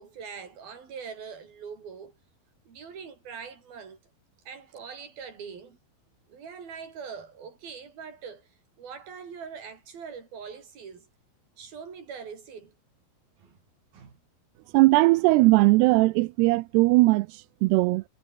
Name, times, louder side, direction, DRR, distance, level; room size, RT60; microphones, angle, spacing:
voice 1, 0.0-2.2 2.7-4.0 4.5-5.8 6.3-8.5 8.8-11.1 11.6-12.8 13.4-13.6 13.9-14.2, right 6 dB, 60° right, 6.3 m, -42 dB
voice 2, 14.7-18.0, right 22 dB, 80° right, 2.5 m, -19 dB
omnidirectional pair, 5.0 m